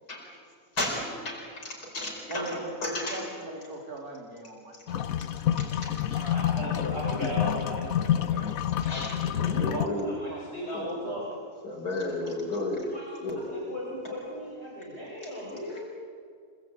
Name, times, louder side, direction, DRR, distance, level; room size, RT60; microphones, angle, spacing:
voice 1, 0.8-3.2 5.6-6.3 8.8-10.1 10.7-10.9 11.6-12.9 13.2-13.5, left 2 dB, 85° left, -1 dB, 5.3 m, -34 dB
voice 2, 2.3-6.4 9.5-10.4 11.0-11.3 12.2-12.4, right 2 dB, 75° right, 0 dB, 4.3 m, -40 dB
sound 1, 4.9-9.9, left 10 dB, 70° left, 1.3 m, -28 dB
voice 3, 6.1-8.5 8.9-9.7 10.1-11.3 12.9-15.8, equal, 45° left, -5 dB, 6.7 m, -37 dB
29.5 x 19.5 x 8.9 m, 2.2 s
omnidirectional pair, 1.6 m